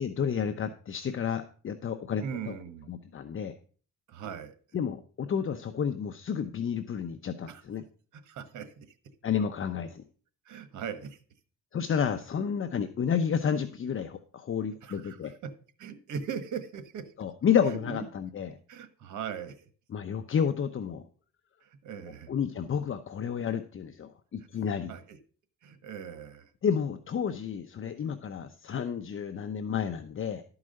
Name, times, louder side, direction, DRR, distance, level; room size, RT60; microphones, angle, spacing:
voice 1, 0.0-2.5 2.9-3.5 4.7-7.8 9.2-10.0 11.7-15.3 17.2-18.5 19.9-21.0 22.3-24.9 26.6-30.4, left 7 dB, 45° left, 8 dB, 0.9 m, -30 dB
voice 2, 2.2-2.9 4.1-4.5 7.5-7.6 8.1-8.9 10.4-11.2 14.8-15.5 15.8-17.1 17.8-18.0 18.7-19.7 21.6-22.3 24.9-25.2 25.6-26.5, right 7 dB, 75° right, 11 dB, 1.4 m, -39 dB
12.0 x 4.9 x 6.4 m, 0.40 s
cardioid pair, 90°, 30 cm